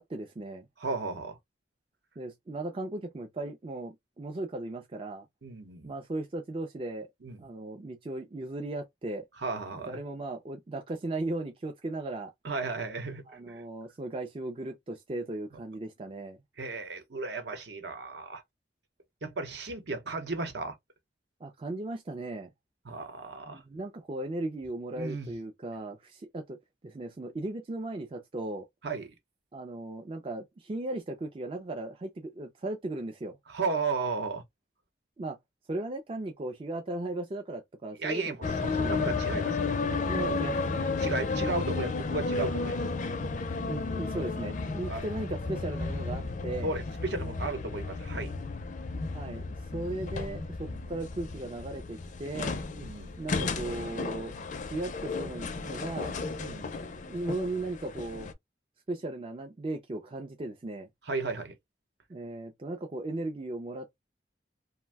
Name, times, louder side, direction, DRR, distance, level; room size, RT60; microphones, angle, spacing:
voice 1, 0.0-0.7 2.2-5.3 5.8-7.1 7.4-9.2 9.7-12.3 13.3-16.4 21.4-22.5 23.5-28.7 29.5-33.4 35.2-35.4 35.7-38.4 38.8-39.0 40.1-41.0 43.6-46.8 49.1-49.4 49.7-52.5 53.2-54.4 54.7-56.1 57.1-58.3 58.9-60.9 62.1-63.9, right 2 dB, 30° right, 0.4 m, -37 dB
voice 2, 0.8-1.4 5.4-5.9 7.2-7.4 9.4-10.0 12.4-13.6 16.6-18.4 19.2-20.8 22.8-23.6 25.0-25.3 28.8-29.1 33.5-34.4 38.0-38.4 38.6-39.8 41.0-42.8 44.9-45.0 46.6-48.3 50.6-50.8 52.7-53.1 56.4-56.8 61.1-61.6, right 3 dB, 65° right, 0.9 m, -34 dB
sound 1, 38.4-58.3, left 3 dB, 45° left, 0.4 m, -33 dB
2.6 x 2.1 x 3.3 m
head